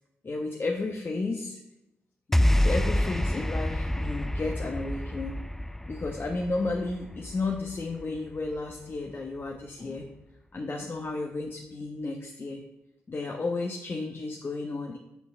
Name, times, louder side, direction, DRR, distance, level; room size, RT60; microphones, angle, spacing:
voice 1, 0.2-1.6 2.3-5.3 5.9-10.1 10.5-12.6 13.1-15.0, left 3 dB, 40° left, 1 dB, 1.2 m, -33 dB
sound 1, 2.3-8.8, left 1 dB, 5° left, 0.4 m, -28 dB
6.3 x 6.0 x 7.1 m, 0.90 s
hypercardioid pair, 40°, 5 cm